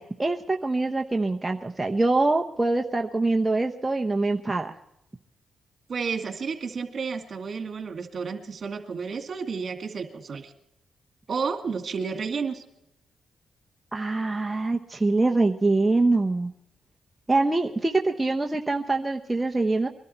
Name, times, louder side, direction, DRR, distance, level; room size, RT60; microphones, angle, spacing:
voice 1, 0.0-4.7 13.9-16.5 17.3-19.9, right 2 dB, 15° right, 2 dB, 1.0 m, -24 dB
voice 2, 5.9-10.5 11.3-12.6, right 5 dB, 55° right, 6 dB, 2.3 m, -31 dB
23.0 x 12.0 x 4.4 m, 0.82 s
cardioid pair, 75°, 0 cm